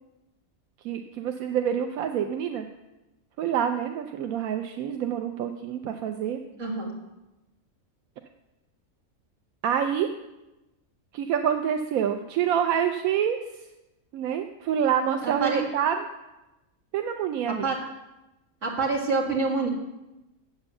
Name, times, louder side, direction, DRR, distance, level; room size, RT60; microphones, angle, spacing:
voice 1, 0.8-2.7 3.4-6.4 9.6-10.1 11.1-13.7 14.1-16.1 16.9-17.7, right 8 dB, 85° right, 5 dB, 1.1 m, -27 dB
voice 2, 6.6-7.0 15.2-15.6 17.6-17.8 18.6-19.7, right 3 dB, 60° right, -2 dB, 2.6 m, -26 dB
7.9 x 7.9 x 6.8 m, 0.99 s
omnidirectional pair, 1.4 m